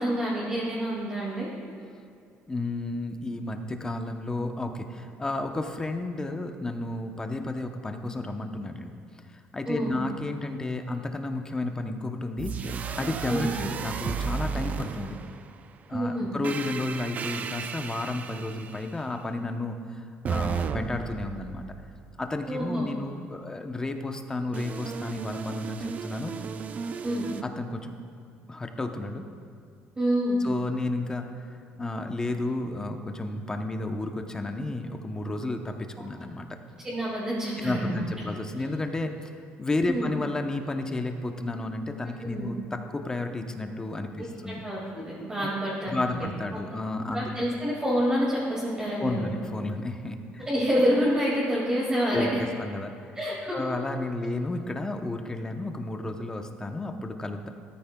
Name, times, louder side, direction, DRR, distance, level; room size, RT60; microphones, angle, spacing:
voice 1, 0.0-1.5 9.7-10.0 13.3-13.5 15.9-16.3 22.5-22.9 27.0-27.2 30.0-30.4 36.8-38.0 38.6-38.7 39.9-40.1 42.2-42.5 44.2-46.3 46.5-46.6 47.1-49.3 50.4-52.3 53.1-53.6, equal, 20° right, -8 dB, 2.2 m, -28 dB
voice 2, 2.5-9.0 9.3-12.7 13.0-15.2 15.9-21.6 22.2-26.3 27.4-27.9 28.5-29.2 30.4-36.5 37.6-44.6 45.9-47.3 49.0-50.5 52.1-53.1 53.5-57.5, left 2 dB, 15° left, 5 dB, 0.7 m, -32 dB
sound 1, 12.4-15.7 16.4-19.0 20.2-22.3 24.5-27.4, right 6 dB, 40° right, 0.4 m, -34 dB
14.0 x 13.5 x 2.3 m, 2.4 s
cardioid pair, 135°, 4 cm